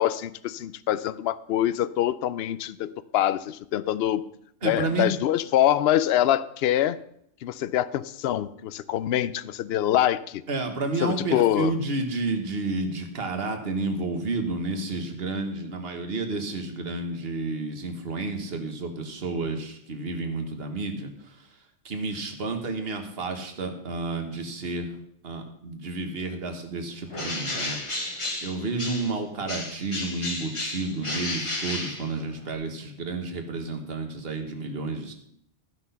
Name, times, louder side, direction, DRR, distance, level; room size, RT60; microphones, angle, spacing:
voice 1, 0.0-4.2 4.6-7.0 7.4-10.4 11.0-11.7, left 12 dB, 65° left, 17 dB, 0.7 m, -25 dB
voice 2, 4.6-5.1 10.5-21.5 21.8-24.9 25.2-27.8 28.4-35.1, right 3 dB, 55° right, 5 dB, 1.6 m, -31 dB
Bird, 27.1-29.2 29.5-32.5, left 2 dB, 25° left, 1.3 m, -33 dB
14.0 x 6.1 x 5.6 m, 0.71 s
omnidirectional pair, 1.2 m